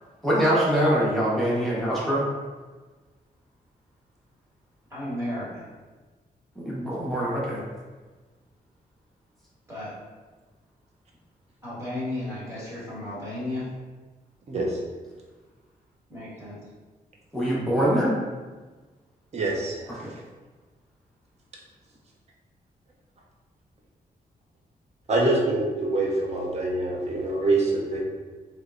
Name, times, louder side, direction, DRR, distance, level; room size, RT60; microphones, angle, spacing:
voice 1, 0.2-2.2 6.6-7.6 17.3-18.1 20.0-20.1, equal, ahead, -7 dB, 0.8 m, -23 dB
voice 2, 4.9-5.7 9.7-9.9 11.6-13.7 16.1-16.6, left 1 dB, 20° right, -10 dB, 1.4 m, -33 dB
voice 3, 14.5-14.8 19.3-20.0 25.1-28.0, right 2 dB, 45° right, -2 dB, 0.6 m, -25 dB
3.4 x 3.0 x 2.5 m, 1.3 s
wide cardioid pair, 170°, 16 cm